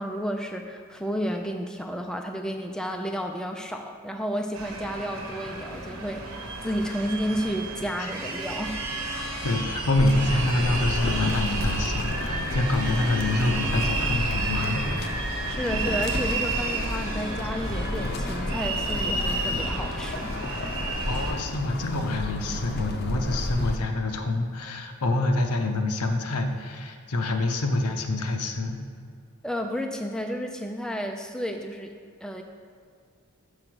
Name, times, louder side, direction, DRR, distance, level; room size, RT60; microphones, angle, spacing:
voice 1, 0.0-8.8 9.2-9.5 15.5-20.3 29.4-31.9 32.2-32.4, equal, 5° left, 4 dB, 0.4 m, -31 dB
sound 1, 4.5-21.3, right 3 dB, 65° right, 1.1 m, -32 dB
voice 2, 9.4-15.2 21.1-28.8, left 2 dB, 90° left, 5 dB, 0.8 m, -26 dB
sound 2, 9.9-23.8, left 1 dB, 45° left, 0.6 m, -31 dB
6.6 x 4.8 x 6.1 m, 2.2 s
head